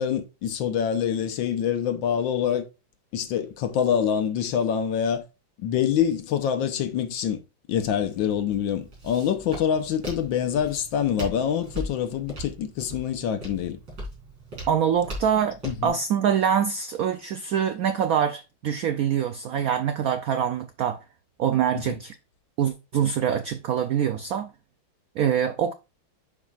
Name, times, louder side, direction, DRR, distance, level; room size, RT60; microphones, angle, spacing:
voice 1, 0.0-2.7 3.1-5.2 5.6-7.4 7.7-13.8 15.6-16.0 21.7-22.0, left 8 dB, 75° left, 1.5 m, -25 dB
Walk footsteps, 7.8-15.9, right 1 dB, 65° right, 4.9 m, -39 dB
voice 2, 14.7-21.0 21.4-22.1 22.6-24.5 25.2-25.7, right 8 dB, 85° right, 0.7 m, -24 dB
10.5 x 4.9 x 2.4 m
omnidirectional pair, 2.2 m